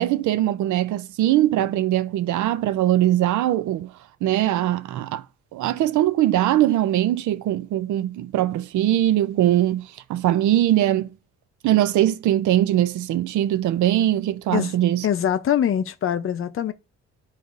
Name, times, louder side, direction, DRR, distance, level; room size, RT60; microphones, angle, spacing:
voice 1, 0.0-3.9 4.2-5.2 5.5-11.1 11.6-15.1, right 13 dB, 75° right, 0.5 m, -21 dB
voice 2, 15.0-16.7, left 9 dB, 45° left, 0.6 m, -23 dB
10.5 x 4.1 x 2.5 m
cardioid pair, 90°, 30 cm